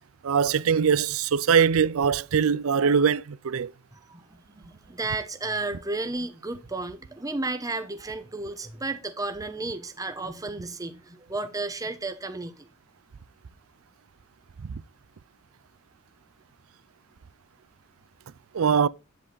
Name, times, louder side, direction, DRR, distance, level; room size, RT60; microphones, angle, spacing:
voice 1, 0.2-3.7 14.6-14.8 18.5-18.9, right 6 dB, 90° right, 0.5 m, -22 dB
voice 2, 3.9-12.7, right 2 dB, 15° right, 1.0 m, -33 dB
10.0 x 7.7 x 3.9 m
head